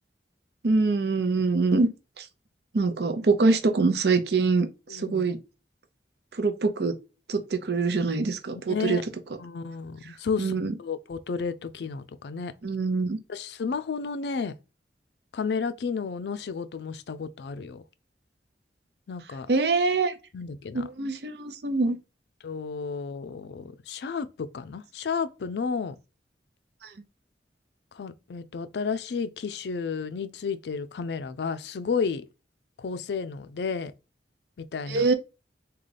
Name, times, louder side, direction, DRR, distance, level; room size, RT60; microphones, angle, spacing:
voice 1, 0.6-1.9 2.2-2.3 2.7-5.4 6.4-6.9 7.3-9.0 10.4-10.7 12.6-13.2 19.5-20.1 20.7-22.0 34.9-35.1, right 3 dB, 65° right, 0.6 m, -24 dB
voice 2, 4.9-5.3 8.5-9.0 9.4-12.5 13.3-14.5 15.3-17.8 19.1-19.5 20.3-20.9 22.4-26.0 27.9-32.2 32.8-33.9 34.6-35.1, left 5 dB, 70° left, 0.4 m, -32 dB
3.7 x 2.4 x 3.3 m
head